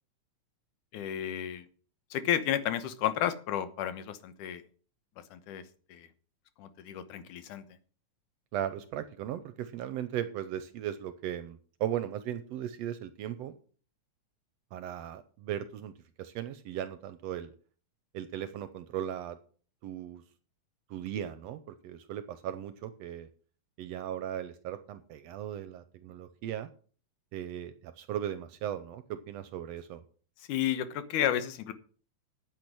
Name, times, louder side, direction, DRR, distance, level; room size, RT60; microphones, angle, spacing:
voice 1, 0.9-1.7 2.1-4.6 5.3-5.6 5.9-6.1 6.6-7.6 30.4-31.7, left 10 dB, 85° left, 11 dB, 2.6 m, -32 dB
voice 2, 8.5-13.6 14.7-15.9 16.2-17.5 18.1-19.4 19.8-20.2 20.9-23.3 23.8-26.7 27.3-30.0, right 10 dB, 75° right, 12 dB, 1.6 m, -37 dB
9.4 x 8.4 x 6.1 m, 0.42 s
omnidirectional pair, 3.5 m